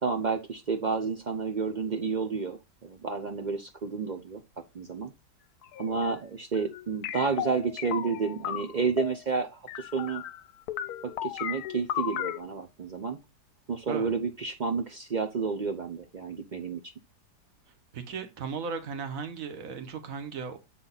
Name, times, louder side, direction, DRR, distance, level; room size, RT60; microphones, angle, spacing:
voice 1, 0.0-4.4 4.7-5.1 5.8-10.2 11.0-13.2 13.7-16.9, right 5 dB, 85° right, 0.4 m, -31 dB
sound 1, 5.6-6.1 6.5-9.2 9.7-10.4 10.7-12.4, left 11 dB, 70° left, 1.0 m, -35 dB
voice 2, 17.9-20.6, right 6 dB, 55° right, 1.5 m, -36 dB
7.9 x 3.9 x 3.9 m
omnidirectional pair, 1.8 m